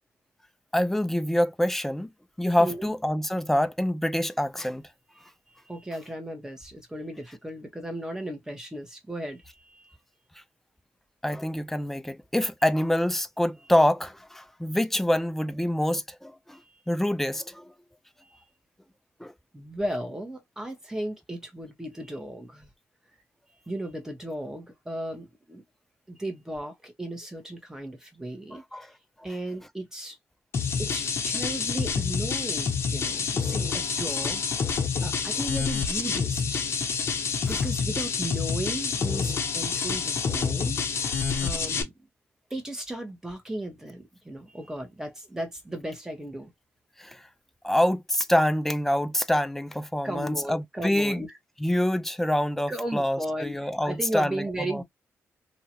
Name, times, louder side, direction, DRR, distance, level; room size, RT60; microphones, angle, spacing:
voice 1, 0.7-2.1 2.4-4.9 11.2-16.6 16.9-17.7 19.2-19.3 28.5-28.9 37.5-37.6 47.0-47.2 47.6-51.3 51.6-54.8, left 1 dB, 5° left, 0.4 m, -26 dB
voice 2, 2.6-2.9 5.1-10.0 16.5-16.8 18.2-18.4 19.5-22.7 23.7-25.6 26.1-28.9 29.2-30.2 30.8-36.6 37.4-41.9 42.5-46.5 50.0-51.3 52.7-54.8, right 1 dB, 10° right, 1.2 m, -36 dB
sound 1, 30.5-41.8, left 5 dB, 55° left, 0.9 m, -28 dB
2.8 x 2.4 x 2.9 m
cardioid pair, 105°, 5 cm